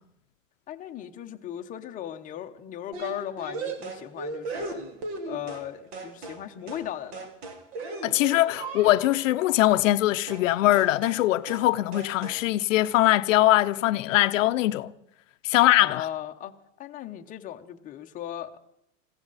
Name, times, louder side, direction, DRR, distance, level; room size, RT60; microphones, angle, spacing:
voice 1, 0.7-4.8 5.2-7.3 15.8-16.5 16.8-18.6, left 11 dB, 20° left, 0.8 m, -37 dB
sound 1, 2.9-5.7 5.9-6.4 6.7-6.9 7.1-9.2 10.3-10.5 10.7-11.2 11.5-11.7 11.9-12.4, right 3 dB, 55° right, 2.7 m, -37 dB
voice 2, 8.0-14.9 15.4-16.1, left 15 dB, 80° left, 0.7 m, -22 dB
22.0 x 15.5 x 4.1 m
supercardioid pair, 150°, 38 cm